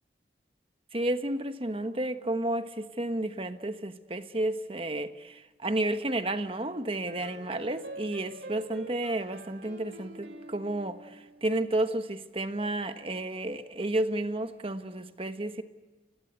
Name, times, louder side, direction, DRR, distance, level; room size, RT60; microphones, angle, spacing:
voice 1, 0.9-15.6, right 1 dB, 30° right, 1.2 m, -31 dB
sound 1, 7.1-11.7, right 2 dB, 75° right, 2.5 m, -45 dB
30.0 x 21.0 x 8.1 m
head